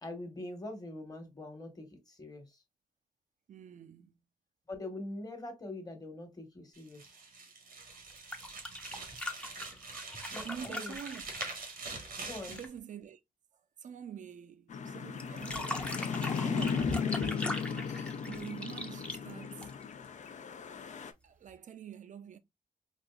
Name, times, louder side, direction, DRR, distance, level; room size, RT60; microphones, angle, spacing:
voice 1, 0.0-2.6 4.7-7.1 10.1-11.0 12.2-12.6, left 2 dB, 25° left, 1.2 m, -43 dB
voice 2, 3.5-4.1 10.4-11.5 12.5-13.2 13.8-15.9 16.3-17.6 18.2-19.7 21.2-22.4, right 8 dB, 60° right, 0.5 m, -46 dB
sound 1, 6.7-12.7, right 4 dB, 85° right, 1.1 m, -45 dB
sound 2, 8.1-12.8 15.2-20.1 21.5-21.6, left 1 dB, 5° left, 0.6 m, -41 dB
sound 3, 14.7-21.1, left 6 dB, 55° left, 0.4 m, -36 dB
4.2 x 2.6 x 2.3 m
cardioid pair, 95°, 15 cm